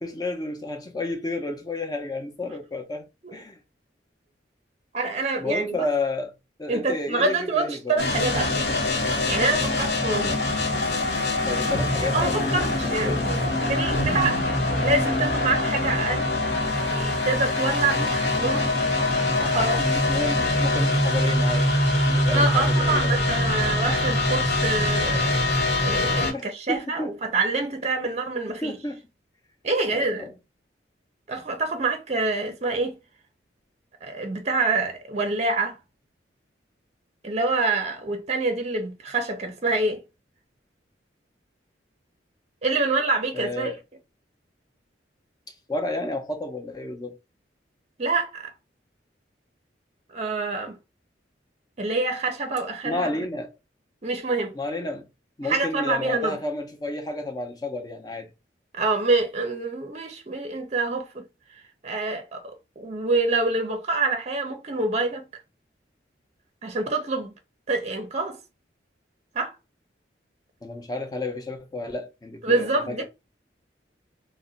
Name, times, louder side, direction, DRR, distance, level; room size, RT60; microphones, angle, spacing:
voice 1, 0.0-3.6 5.4-6.3 6.6-7.9 11.5-12.4 12.8-13.3 19.8-21.7 22.1-23.2 26.3-27.1 28.6-29.0 29.9-30.4 43.3-43.8 45.7-47.2 52.8-53.5 54.5-55.1 55.4-58.3 70.6-73.0, left 2 dB, 20° left, 0.6 m, -31 dB
voice 2, 4.9-5.9 6.7-8.7 9.3-10.4 12.1-14.4 14.8-16.3 16.9-18.8 19.4-19.8 22.3-25.4 25.8-28.8 29.6-30.3 31.3-33.0 34.0-35.8 37.2-40.0 42.6-43.7 48.0-48.5 50.1-50.8 51.8-53.1 54.0-54.6 55.4-56.4 58.8-61.2 61.8-65.2 66.6-67.3 67.7-68.4 69.3-69.5 72.4-73.0, right 3 dB, 35° right, 0.6 m, -26 dB
sound 1, 8.0-26.3, left 2 dB, 65° left, 1.0 m, -23 dB
2.5 x 2.1 x 3.9 m
head